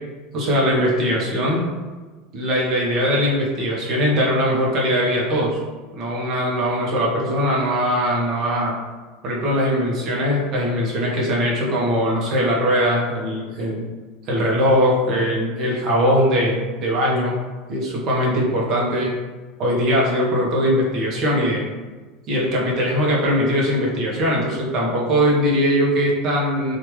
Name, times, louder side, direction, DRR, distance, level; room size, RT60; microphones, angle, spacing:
voice 1, 0.3-1.7 2.3-5.6 5.9-8.8 9.2-13.8 14.3-17.4 17.7-19.1 19.6-21.7 22.3-26.8, equal, 50° right, -3 dB, 1.0 m, -20 dB
3.1 x 2.5 x 3.1 m, 1.3 s
supercardioid pair, 110°, 0 cm